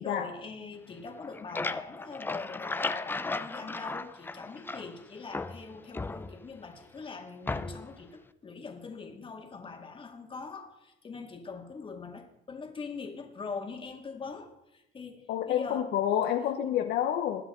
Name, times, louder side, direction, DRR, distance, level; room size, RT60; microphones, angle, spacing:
voice 1, 0.0-15.9, left 4 dB, 30° left, 3 dB, 2.1 m, -42 dB
sound 1, 1.1-5.0 5.3-6.7 7.5-8.0, left 3 dB, 10° left, 0.5 m, -36 dB
voice 2, 15.3-17.4, left 10 dB, 75° left, 5 dB, 1.0 m, -28 dB
21.0 x 8.1 x 3.8 m, 0.86 s
cardioid pair, 110°, 17 cm